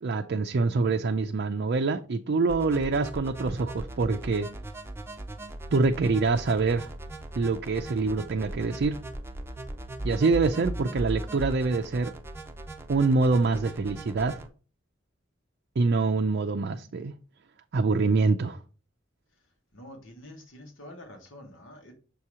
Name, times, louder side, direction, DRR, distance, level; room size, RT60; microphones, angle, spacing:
voice 1, 0.0-4.5 5.7-6.9 7.3-9.0 10.0-12.1 12.9-14.4 15.8-17.1 17.7-18.6, right 3 dB, 55° right, 0.4 m, -25 dB
sound 1, 2.5-14.5, right 1 dB, 15° right, 0.6 m, -38 dB
voice 2, 19.7-21.9, left 1 dB, 75° left, 1.5 m, -47 dB
6.9 x 2.9 x 4.7 m
head